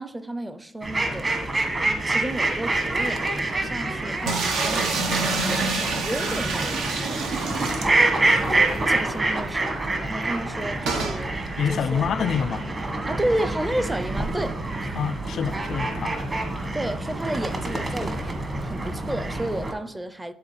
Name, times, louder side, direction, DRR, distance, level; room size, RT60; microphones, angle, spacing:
voice 1, 0.0-1.5 2.1-7.3 8.5-11.3 11.7-12.0 13.1-14.9 16.7-20.3, right 1 dB, 10° right, 0.5 m, -32 dB
sound 1, 0.8-19.7, right 2 dB, 35° right, 1.3 m, -27 dB
sound 2, 4.3-8.4 8.8-8.9 9.1-9.2 10.9-11.2, right 3 dB, 85° right, 1.0 m, -27 dB
voice 2, 11.6-12.6 14.9-16.2, left 7 dB, 60° left, 0.3 m, -26 dB
11.0 x 4.1 x 3.2 m
cardioid pair, 90°, 0 cm